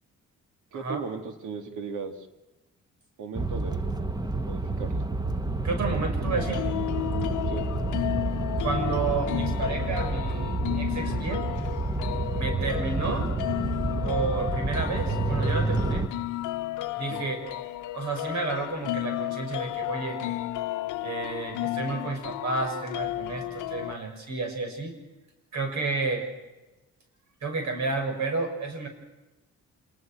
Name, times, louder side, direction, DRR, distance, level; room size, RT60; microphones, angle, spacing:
voice 1, 0.7-2.3 3.2-3.8 4.4-5.0 7.4-7.6 17.1-17.3, right 5 dB, 85° right, 6 dB, 2.5 m, -37 dB
sound 1, 3.3-16.1, right 2 dB, 15° right, 1.2 m, -29 dB
voice 2, 5.6-6.7 8.6-11.5 12.4-13.3 14.0-16.1 17.0-17.4 17.9-20.2 21.0-25.0 25.5-26.3 27.4-28.9, right 3 dB, 65° right, 5 dB, 6.6 m, -31 dB
sound 2, 6.4-23.9, left 16 dB, 85° left, 0.8 m, -33 dB
26.5 x 20.5 x 6.1 m, 1.1 s
cardioid pair, 90°, 30 cm